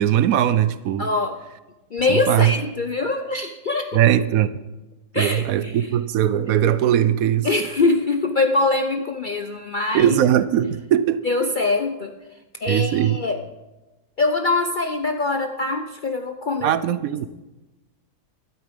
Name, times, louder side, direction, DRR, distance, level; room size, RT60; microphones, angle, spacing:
voice 1, 0.0-1.1 2.1-2.5 3.9-4.5 5.2-7.5 9.9-11.3 12.7-13.2 16.6-17.3, right 11 dB, 70° right, 0.9 m, -20 dB
voice 2, 1.0-1.4 1.9-4.0 5.1-5.9 7.4-10.2 11.2-12.1 12.6-13.4 14.2-16.7, left 3 dB, 70° left, 0.4 m, -23 dB
12.5 x 12.0 x 5.2 m
omnidirectional pair, 1.7 m